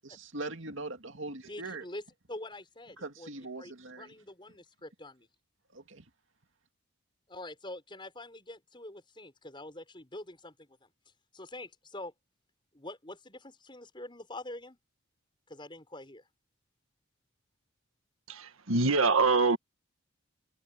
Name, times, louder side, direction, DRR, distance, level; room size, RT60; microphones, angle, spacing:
voice 1, 0.0-1.9 3.0-4.1 5.7-6.0, right 2 dB, 65° right, 2.4 m, -41 dB
voice 2, 1.5-3.3 3.6-3.7 4.0-5.3 7.3-10.9 11.3-12.1 12.7-14.8 15.5-16.3, left 1 dB, 25° left, 6.5 m, -45 dB
voice 3, 18.3-19.6, right 3 dB, 85° right, 1.6 m, -25 dB
head